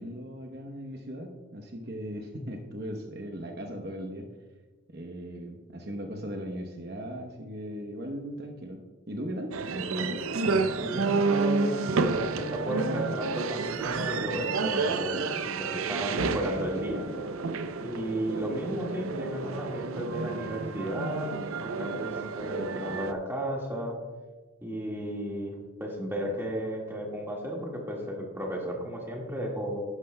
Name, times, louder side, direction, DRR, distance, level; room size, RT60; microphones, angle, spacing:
voice 1, 0.0-4.3 4.9-8.8 9.1-10.2, equal, 50° right, 2 dB, 0.9 m, -38 dB
sound 1, 9.5-23.1, right 4 dB, 80° right, 0.5 m, -30 dB
voice 2, 10.8-17.1 17.8-21.3 21.6-24.0 24.6-29.8, equal, 10° right, -2 dB, 1.7 m, -34 dB
12.0 x 11.0 x 2.2 m, 1.2 s
head